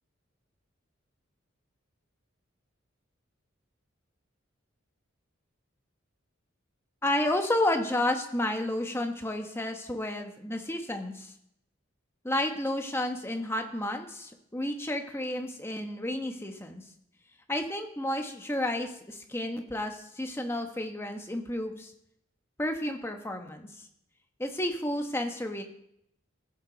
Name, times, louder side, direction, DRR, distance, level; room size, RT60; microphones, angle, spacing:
voice 1, 7.0-11.3 12.2-16.8 17.5-21.9 22.6-23.7 24.4-25.6, left 1 dB, 10° left, 4 dB, 1.1 m, -31 dB
15.0 x 11.0 x 4.0 m, 0.75 s
head